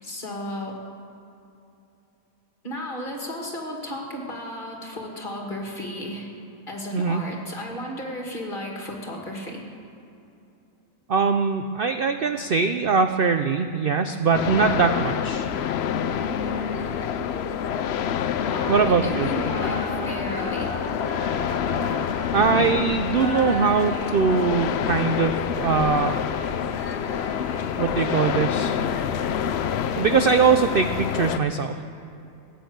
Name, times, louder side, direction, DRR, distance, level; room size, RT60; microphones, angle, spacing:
voice 1, 0.0-0.8 2.6-6.3 6.7-9.6 18.4-20.8, left 1 dB, 30° left, 0 dB, 2.4 m, -34 dB
voice 2, 11.1-15.5 18.7-19.3 22.3-26.2 27.8-28.8 30.0-31.8, right 5 dB, 85° right, 7 dB, 0.4 m, -22 dB
sound 1, 14.3-31.4, left 9 dB, 85° left, 0.5 m, -27 dB
sound 2, 15.3-30.2, left 1 dB, 65° right, 5.3 m, -36 dB
17.0 x 9.4 x 8.0 m, 2.8 s
omnidirectional pair, 1.7 m